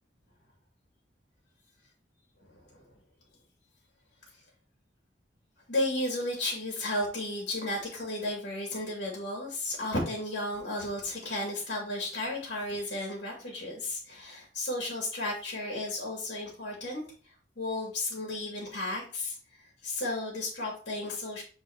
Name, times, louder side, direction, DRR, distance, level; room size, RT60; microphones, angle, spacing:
voice 1, 2.4-2.8 5.7-17.0 17.6-19.4 19.8-21.4, left 1 dB, 70° left, -2 dB, 2.3 m, -33 dB
8.5 x 4.2 x 2.9 m, 0.40 s
head